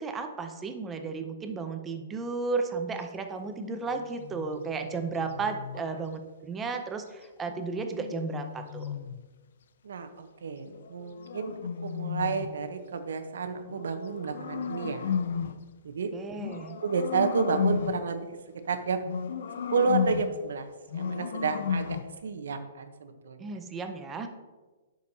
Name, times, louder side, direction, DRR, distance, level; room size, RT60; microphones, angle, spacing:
voice 1, 0.0-8.8 16.1-16.8 23.4-24.3, right 4 dB, 10° right, 6 dB, 0.5 m, -34 dB
sound 1, 3.4-5.8 7.5-9.3 10.7-12.7 13.7-15.7 16.4-18.1 19.0-20.4 20.9-22.2, left 7 dB, 60° left, 0.5 m, -34 dB
voice 2, 9.8-15.2 15.8-16.1 16.8-19.0 19.7-23.6, right 4 dB, 80° right, 8 dB, 0.9 m, -31 dB
9.8 x 6.4 x 2.7 m, 1.3 s
hypercardioid pair, 170°, 0 cm